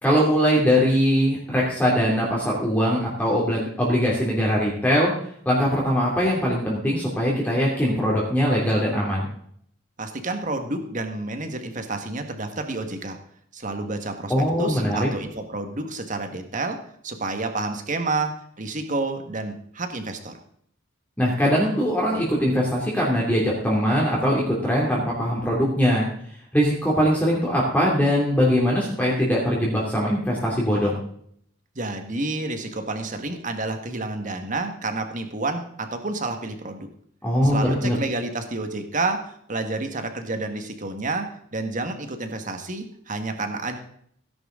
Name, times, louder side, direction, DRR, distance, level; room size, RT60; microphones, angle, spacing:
voice 1, 0.0-5.1 5.4-9.3 14.3-15.1 21.2-26.1 26.5-31.0 37.2-38.0, equal, 10° left, -4 dB, 2.7 m, -21 dB
voice 2, 10.0-13.2 13.5-14.3 14.6-20.4 31.8-36.9 37.4-43.8, right 2 dB, 40° right, 6 dB, 1.7 m, -29 dB
17.0 x 10.5 x 3.9 m, 0.65 s
head